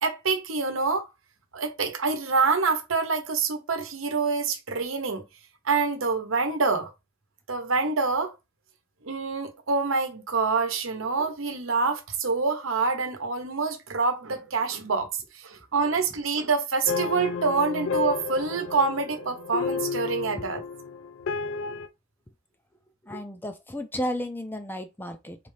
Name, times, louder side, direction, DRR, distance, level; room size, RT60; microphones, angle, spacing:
voice 1, 0.0-1.0 1.5-5.2 5.6-6.9 7.5-8.3 9.0-20.6, right 4 dB, 75° right, 1.0 m, -26 dB
sound 1, 16.8-21.9, left 5 dB, 65° left, 0.4 m, -31 dB
voice 2, 23.0-25.4, equal, 10° left, 0.5 m, -33 dB
4.1 x 3.3 x 3.3 m
head